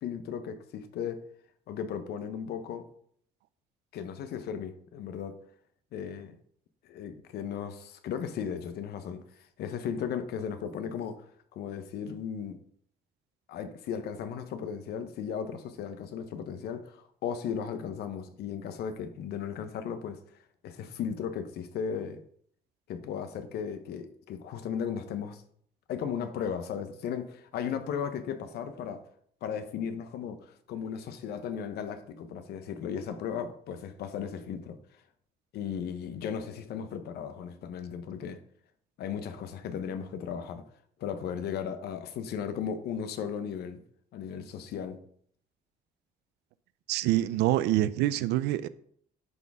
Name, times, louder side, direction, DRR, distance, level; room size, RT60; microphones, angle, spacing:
voice 1, 0.0-1.2 1.7-2.9 3.9-5.3 5.9-6.3 6.8-11.2 11.5-12.6 13.5-20.2 20.6-22.2 22.9-25.4 25.9-29.0 29.4-34.8 35.5-38.4 39.0-40.6 41.0-43.8 44.1-45.0, left 7 dB, 70° left, 0.9 m, -36 dB
voice 2, 46.9-48.7, right 14 dB, 85° right, 0.5 m, -26 dB
11.0 x 4.1 x 3.6 m
cardioid pair, 110°, 17 cm